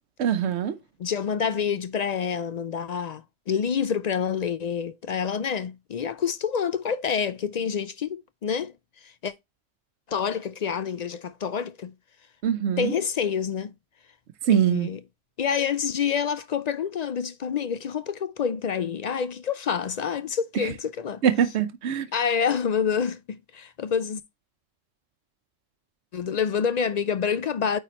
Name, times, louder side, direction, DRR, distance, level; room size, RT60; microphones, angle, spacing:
voice 1, 0.2-0.8 12.4-12.9 14.5-14.9 20.5-20.7 21.2-22.1, right 8 dB, 80° right, 1.0 m, -23 dB
voice 2, 1.0-8.7 9.0-9.3 10.1-11.9 12.8-13.7 14.5-15.0 15.4-21.2 22.1-24.2 26.1-27.8, left 7 dB, 55° left, 0.4 m, -27 dB
9.1 x 3.4 x 4.2 m
omnidirectional pair, 1.1 m